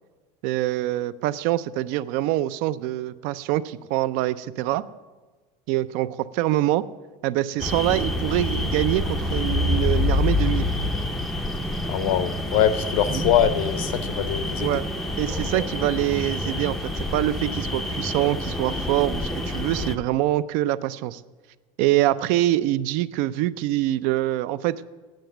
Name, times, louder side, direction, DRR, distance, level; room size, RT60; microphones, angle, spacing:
voice 1, 0.4-4.8 5.7-6.8 7.2-10.7 13.1-13.2 14.6-14.8 15.2-21.2 21.8-24.8, right 14 dB, 55° right, 0.4 m, -24 dB
sound 1, 7.6-19.9, left 1 dB, ahead, 0.5 m, -27 dB
voice 2, 11.9-14.7, left 10 dB, 80° left, 0.8 m, -23 dB
9.1 x 7.7 x 9.1 m
cardioid pair, 170°, 17 cm